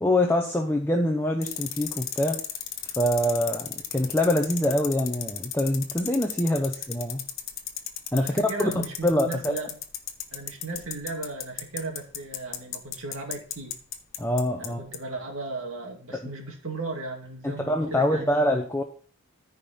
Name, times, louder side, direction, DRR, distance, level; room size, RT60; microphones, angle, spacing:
voice 1, 0.0-2.4 2.9-7.2 8.1-9.6 14.2-14.8 17.4-18.8, left 1 dB, 10° left, 2 dB, 0.7 m, -25 dB
sound 1, 1.4-14.7 14.9-15.0, left 11 dB, 65° left, 1.1 m, -33 dB
voice 2, 8.1-9.8 10.3-13.7 14.6-18.4, right 3 dB, 70° right, 2 dB, 2.4 m, -36 dB
14.0 x 5.2 x 4.3 m, 0.44 s
head